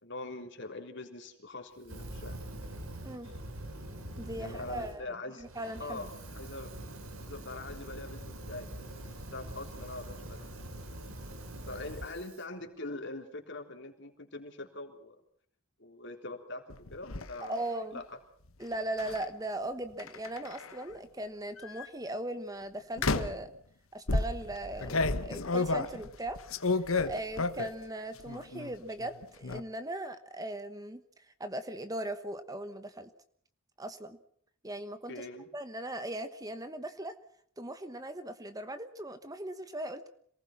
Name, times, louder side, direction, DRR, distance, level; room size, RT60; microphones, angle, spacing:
voice 1, 0.0-2.4 3.2-3.3 4.4-5.5 5.8-6.7 7.2-10.6 11.6-15.2 15.8-17.6 17.9-18.0 35.1-35.5, left 2 dB, 55° left, 4 dB, 3.7 m, -43 dB
Fire, 1.8-5.0 5.4-12.4, right 1 dB, 85° right, 4.0 m, -44 dB
voice 2, 4.2-6.1 17.4-18.0 18.6-23.5 23.9-26.4 27.0-33.1 33.8-34.2 34.6-35.2 35.5-37.2 37.6-40.0, right 1 dB, 15° right, 10 dB, 1.1 m, -39 dB
sound 1, 16.7-17.3 19.0-19.2 20.0-20.8 21.6-21.9 23.0-23.5 24.1-27.8 28.2-28.7 29.0-29.6, left 3 dB, 75° left, 1.4 m, -31 dB
27.0 x 19.5 x 6.0 m, 0.62 s
head